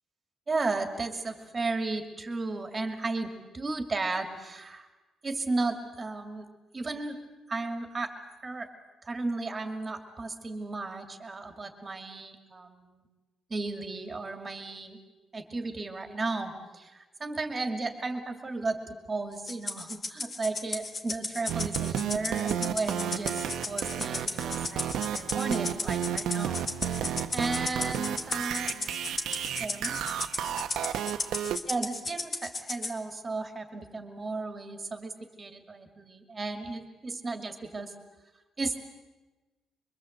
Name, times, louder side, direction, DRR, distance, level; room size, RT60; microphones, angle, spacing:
voice 1, 0.5-4.9 5.2-6.5 6.7-7.2 7.5-8.1 8.4-8.7 9.0-13.0 13.5-15.0 15.3-18.8 19.1-28.7 29.3-30.0 31.7-37.9 38.6-38.8, right 3 dB, 20° right, 6 dB, 2.3 m, -34 dB
Rattle (instrument), 19.5-33.0, left 3 dB, 30° left, 2.0 m, -35 dB
sound 1, 21.5-31.6, right 9 dB, 70° right, 1.1 m, -32 dB
25.5 x 23.5 x 7.9 m, 1.2 s
cardioid pair, 165°, 0 cm